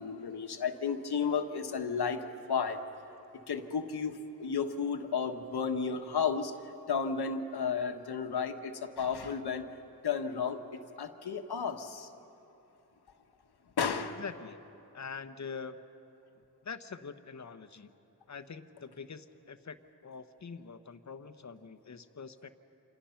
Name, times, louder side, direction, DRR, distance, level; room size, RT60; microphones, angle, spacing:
voice 1, 0.0-2.9 3.5-6.5 6.9-9.7 10.0-12.1 13.8-14.2, left 6 dB, 85° left, 6 dB, 1.4 m, -33 dB
voice 2, 14.2-14.6 14.9-15.8 16.6-17.9 18.3-19.8 20.0-22.5, left 5 dB, 45° left, 10 dB, 1.0 m, -44 dB
28.5 x 27.0 x 5.8 m, 2.9 s
wide cardioid pair, 110°, 38 cm